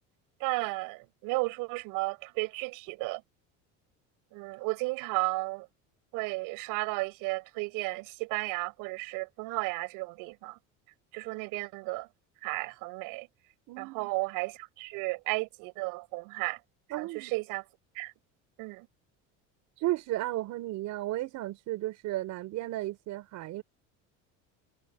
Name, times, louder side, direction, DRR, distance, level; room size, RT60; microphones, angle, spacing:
voice 1, 0.4-3.2 4.3-5.7 6.1-10.6 11.1-12.1 12.4-13.3 13.8-16.6 17.0-17.6 17.9-18.1 18.6-18.9, right 25 dB, 80° right, 7.2 m, -34 dB
voice 2, 13.7-14.1 16.9-17.3 19.8-23.6, right 16 dB, 60° right, 5.7 m, -34 dB
cardioid pair, 145°, 32 cm